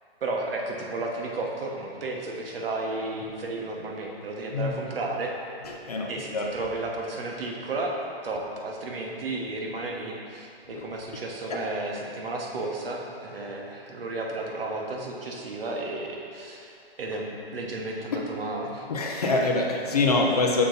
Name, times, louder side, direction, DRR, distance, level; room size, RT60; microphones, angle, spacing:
voice 1, 0.2-5.3 6.1-8.0 8.2-18.9, right 2 dB, 65° right, 0 dB, 1.1 m, -33 dB
voice 2, 5.9-6.5 10.7-10.8 18.1-18.2 18.9-20.6, left 3 dB, 40° left, 1 dB, 0.5 m, -24 dB
6.8 x 3.9 x 3.9 m, 2.4 s
hypercardioid pair, 170°, 31 cm